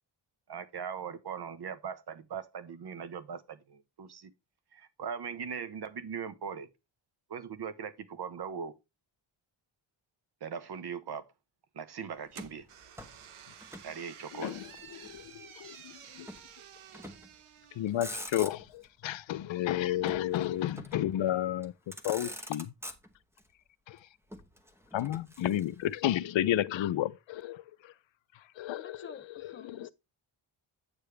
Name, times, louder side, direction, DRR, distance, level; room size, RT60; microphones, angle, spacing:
voice 1, 0.5-4.3 4.7-6.7 7.3-8.7 10.4-11.3 11.7-12.7 13.8-14.6, right 7 dB, 50° right, 1.1 m, -40 dB
Motor vehicle (road), 12.3-13.9 14.2-15.3 16.3-16.5 16.9-17.4 17.8-18.9 20.1-21.1 21.6-21.7 21.9-23.4 24.3-25.9, equal, 5° right, 0.9 m, -45 dB
sound 1, 12.3-18.5, right 9 dB, 80° right, 1.0 m, -52 dB
voice 2, 14.3-14.6 15.0-15.8 16.2-16.3 17.8-21.7 22.0-22.7 23.9-24.0 24.9-27.6 28.6-29.1 29.4-29.9, left 12 dB, 65° left, 0.6 m, -31 dB
voice 3, 28.8-29.9, left 5 dB, 25° left, 0.8 m, -50 dB
8.8 x 6.8 x 3.3 m
wide cardioid pair, 140°, 49 cm